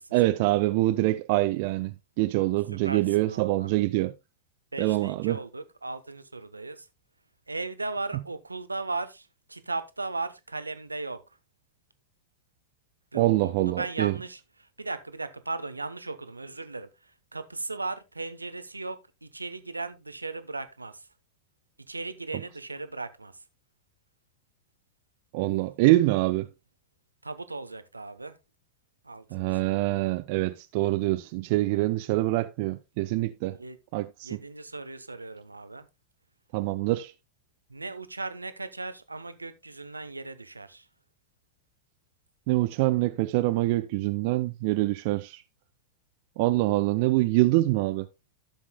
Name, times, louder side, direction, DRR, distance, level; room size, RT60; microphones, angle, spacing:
voice 1, 0.1-4.1 4.8-5.4 8.1-8.2 13.1-14.2 22.3-22.4 25.3-26.5 29.3-33.6 33.9-34.4 36.5-37.1 42.5-45.4 46.4-48.1, right 18 dB, 50° right, 0.5 m, -25 dB
voice 2, 2.8-3.7 4.7-6.9 7.5-11.2 13.1-14.4 14.8-16.9 17.3-20.9 21.9-23.3 27.2-28.3 29.0-29.8 33.6-33.8 34.2-35.9 37.7-40.8, right 3 dB, 80° right, 0.9 m, -37 dB
14.0 x 7.2 x 2.2 m
figure-of-eight pair, 90°, 0 cm